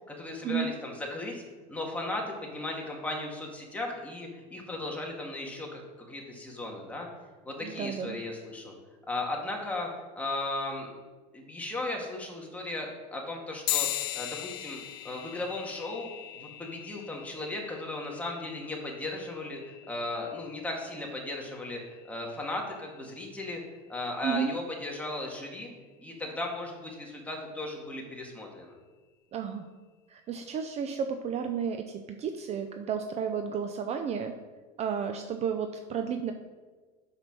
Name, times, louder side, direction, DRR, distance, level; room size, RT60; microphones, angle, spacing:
voice 1, 0.1-1.4 1.7-7.1 7.4-8.7 9.1-9.9 10.2-10.9 11.3-14.8 15.0-16.1 16.4-23.6 23.9-25.7 26.0-28.7, left 2 dB, 5° left, -1 dB, 1.9 m, -36 dB
voice 2, 7.6-8.2 24.2-24.5 29.3-29.7 30.1-34.3 34.8-36.3, right 7 dB, 35° right, 6 dB, 0.6 m, -32 dB
sound 1, 13.7-23.5, left 15 dB, 65° left, 0.7 m, -39 dB
8.0 x 5.7 x 6.1 m, 1.4 s
supercardioid pair, 125°, 20 cm